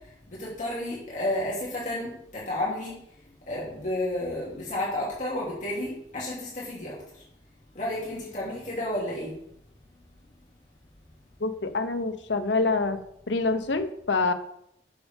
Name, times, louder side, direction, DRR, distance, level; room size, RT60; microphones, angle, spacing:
voice 1, 0.3-3.0 3.5-7.0 7.7-9.4, left 1 dB, 45° left, -6 dB, 2.7 m, -31 dB
voice 2, 11.4-13.0 13.3-14.3, left 3 dB, 90° left, 8 dB, 1.0 m, -26 dB
11.0 x 6.4 x 3.6 m, 0.73 s
head